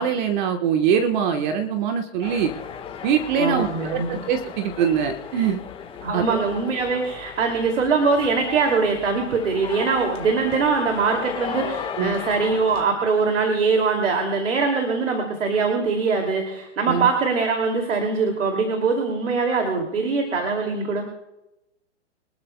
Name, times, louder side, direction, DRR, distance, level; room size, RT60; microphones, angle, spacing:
voice 1, 0.0-2.5 3.0-5.6 6.1-6.4 12.0-12.1 16.9-17.1, right 7 dB, 40° right, 5 dB, 1.2 m, -23 dB
sound 1, 2.2-12.8, left 7 dB, 15° left, 1.3 m, -36 dB
voice 2, 3.4-4.2 6.0-21.0, right 4 dB, 85° right, 3 dB, 2.6 m, -22 dB
25.0 x 12.5 x 2.2 m, 0.94 s
hypercardioid pair, 140°, 36 cm